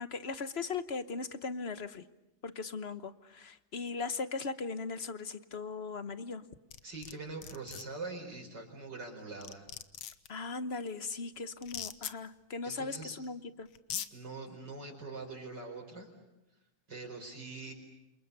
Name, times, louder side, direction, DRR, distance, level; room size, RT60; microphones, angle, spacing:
voice 1, 0.0-2.0 2.4-6.4 10.3-13.7, left 4 dB, 40° left, 13 dB, 1.0 m, -38 dB
sound 1, 6.7-7.1 7.4-7.8 9.0-9.1 9.4-10.3 11.6-12.1 13.2-13.3 13.8-14.1, left 10 dB, 80° left, 2.0 m, -40 dB
voice 2, 6.8-9.7 12.6-13.2 14.1-16.1 16.9-17.7, right 3 dB, 55° right, 2 dB, 5.4 m, -43 dB
28.5 x 28.0 x 6.9 m, 0.95 s
omnidirectional pair, 2.3 m